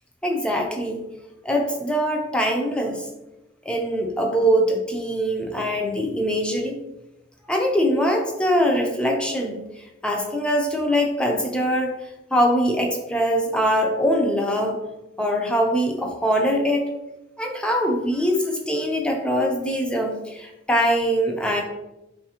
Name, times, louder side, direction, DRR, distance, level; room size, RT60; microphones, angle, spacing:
voice 1, 0.2-1.0 1.4-3.1 3.7-6.8 7.5-11.9 12.3-14.8 15.2-16.9 17.4-21.6, equal, 5° left, 1 dB, 0.3 m, -22 dB
4.0 x 2.4 x 2.8 m, 0.97 s
head